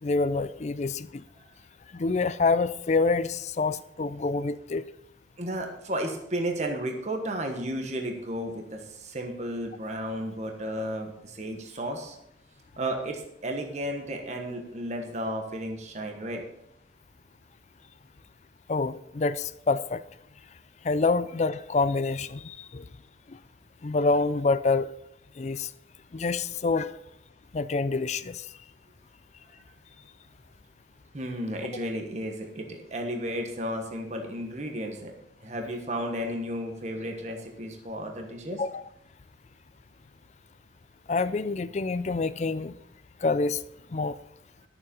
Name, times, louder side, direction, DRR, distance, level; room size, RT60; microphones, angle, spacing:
voice 1, 0.0-1.2 1.9-4.8 18.7-20.0 20.8-22.8 23.3-23.4 23.8-24.9 25.4-25.7 26.1-26.9 27.5-28.5 38.6-38.8 41.1-42.7 43.2-43.6 43.9-44.2, left 3 dB, 40° left, 15 dB, 0.4 m, -27 dB
voice 2, 5.4-12.2 12.8-16.4 31.1-35.1 35.4-38.6, right 1 dB, 40° right, 3 dB, 1.3 m, -33 dB
12.0 x 7.1 x 5.3 m, 0.79 s
head